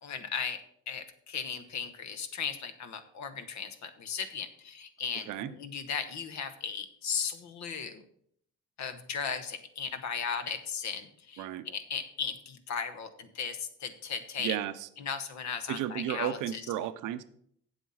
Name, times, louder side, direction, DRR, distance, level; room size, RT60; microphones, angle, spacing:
voice 1, 0.0-8.0 8.8-14.6 15.0-16.6, left 6 dB, 65° left, 10 dB, 1.2 m, -36 dB
voice 2, 14.4-14.9 15.7-17.2, right 11 dB, 90° right, 12 dB, 0.7 m, -33 dB
8.1 x 7.8 x 5.6 m, 0.67 s
cardioid pair, 90°, 30 cm